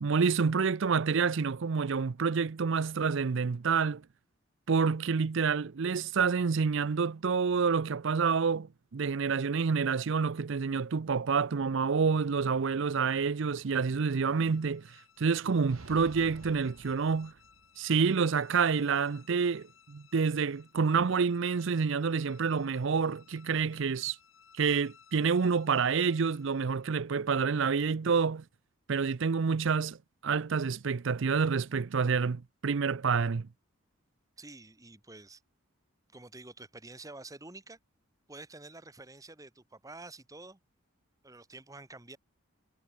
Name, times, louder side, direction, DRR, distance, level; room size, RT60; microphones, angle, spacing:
voice 1, 0.0-4.0 4.7-14.9 15.2-17.3 17.8-24.2 24.6-28.4 28.9-30.0 30.2-33.5, right 5 dB, 60° right, 0.5 m, -28 dB
sound 1, 13.7-27.1, left 7 dB, 75° left, 4.3 m, -61 dB
sound 2, 15.7-17.9, right 3 dB, 85° right, 0.9 m, -50 dB
voice 2, 34.4-35.4 36.1-37.8 38.3-40.6 41.2-42.2, right 2 dB, 15° right, 1.5 m, -48 dB
head